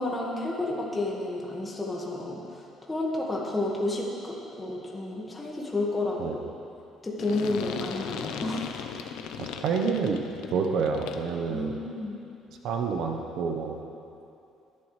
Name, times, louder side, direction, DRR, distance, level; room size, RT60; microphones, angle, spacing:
voice 1, 0.0-6.4 7.0-8.7 11.5-12.2, left 2 dB, 15° left, -3 dB, 1.7 m, -31 dB
sound 1, 7.2-11.4, left 7 dB, 85° left, 0.8 m, -37 dB
voice 2, 9.4-10.2 10.5-11.8 12.6-13.8, right 5 dB, 65° right, 3 dB, 1.0 m, -28 dB
19.0 x 11.5 x 3.3 m, 2.7 s
cardioid pair, 145°, 0 cm